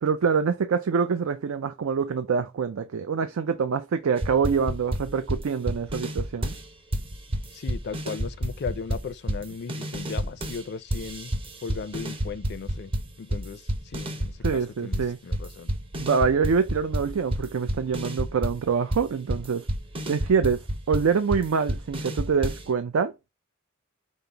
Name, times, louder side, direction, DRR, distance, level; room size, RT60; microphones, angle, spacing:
voice 1, 0.0-6.5 14.4-15.2 16.0-19.6 20.1-20.6 20.9-23.1, right 6 dB, 90° right, 0.4 m, -25 dB
sound 1, 4.2-6.7 6.9-10.6 10.9-14.7 14.9-22.7, equal, 25° right, 0.6 m, -30 dB
voice 2, 7.5-11.3 11.6-12.9 13.2-15.7, left 5 dB, 55° left, 0.4 m, -37 dB
5.2 x 2.0 x 4.4 m
head